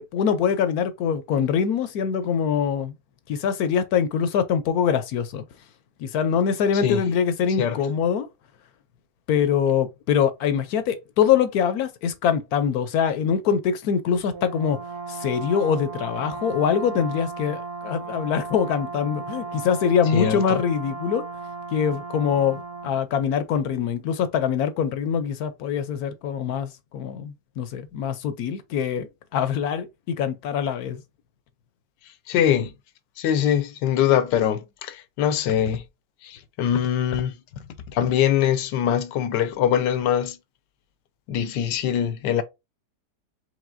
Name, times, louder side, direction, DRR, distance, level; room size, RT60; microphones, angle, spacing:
voice 1, 0.0-2.9 3.3-5.4 6.0-8.3 9.3-14.8 15.1-21.2 21.7-29.1 29.3-31.0, left 7 dB, 70° left, 1.0 m, -24 dB
Brass instrument, 14.3-23.0, right 4 dB, 70° right, 1.2 m, -35 dB
voice 2, 20.1-20.6 32.3-32.7 33.2-35.8 36.2-37.4 37.9-40.4 41.3-42.4, left 9 dB, 90° left, 1.3 m, -23 dB
4.8 x 3.3 x 2.5 m
omnidirectional pair, 1.8 m